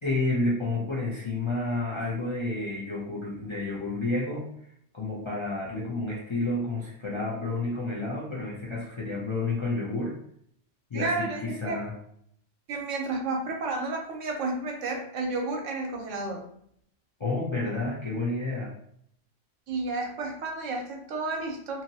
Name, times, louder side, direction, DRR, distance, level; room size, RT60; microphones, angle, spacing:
voice 1, 0.0-4.5 4.9-10.1 10.9-11.9 17.2-18.7, left 2 dB, 40° left, -5 dB, 0.4 m, -30 dB
voice 2, 10.9-11.8 12.7-16.4 19.7-21.8, right 3 dB, 90° right, 1 dB, 1.1 m, -31 dB
2.9 x 2.7 x 2.7 m, 0.67 s
omnidirectional pair, 1.3 m